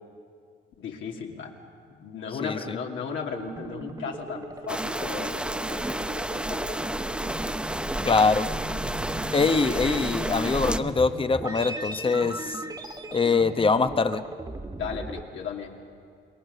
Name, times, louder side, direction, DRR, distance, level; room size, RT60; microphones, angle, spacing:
voice 1, 0.8-1.6 1.9-6.9 14.8-15.8, left 6 dB, 75° left, 0 dB, 2.8 m, -36 dB
sound 1, 3.3-15.2, right 1 dB, 20° right, 1.7 m, -37 dB
sound 2, 4.7-10.8, right 1 dB, 5° right, 0.8 m, -31 dB
voice 2, 8.0-8.5 9.3-12.6 13.1-14.2, left 4 dB, 25° left, 10 dB, 1.0 m, -23 dB
28.0 x 21.5 x 6.9 m, 2.2 s
cardioid pair, 90°, 20 cm